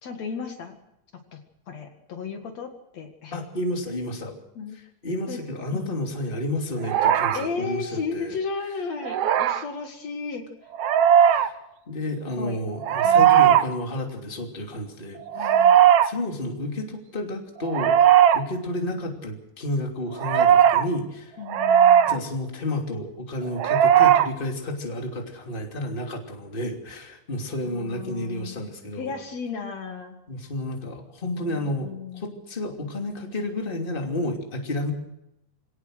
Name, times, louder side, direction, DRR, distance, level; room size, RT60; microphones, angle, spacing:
voice 1, 0.0-0.8 1.1-3.4 3.9-4.0 4.6-4.8 5.3-5.4 5.7-6.0 7.3-10.4 12.4-12.6 13.0-13.5 15.3-15.8 21.4-22.2 27.6-28.5 29.0-30.2 31.4-32.3, left 5 dB, 60° left, 4 dB, 2.9 m, -34 dB
voice 2, 3.3-4.3 5.0-8.4 11.2-11.6 11.9-15.5 16.0-18.0 18.3-21.4 22.0-29.1 30.3-34.9, left 1 dB, 15° left, 2 dB, 2.8 m, -31 dB
sound 1, 6.8-7.5 9.0-9.6 10.7-11.5 12.8-13.6 15.3-16.1 17.6-18.4 20.2-20.8 21.5-22.2 23.6-24.3, right 9 dB, 65° right, 1.7 m, -17 dB
25.0 x 18.0 x 6.4 m, 0.84 s
omnidirectional pair, 3.6 m